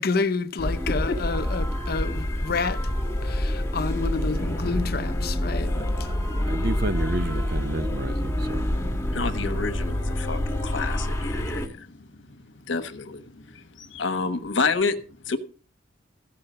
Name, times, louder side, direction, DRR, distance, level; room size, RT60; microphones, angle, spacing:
voice 1, 0.0-2.8 3.2-5.8, left 4 dB, 50° left, 0.7 m, -29 dB
sound 1, 0.6-11.7, left 1 dB, 15° left, 1.5 m, -27 dB
voice 2, 0.9-1.2 9.1-15.0 15.2-15.4, left 4 dB, 70° left, 1.2 m, -29 dB
voice 3, 6.5-8.7, right 2 dB, 50° right, 0.8 m, -30 dB
15.0 x 5.8 x 6.7 m
head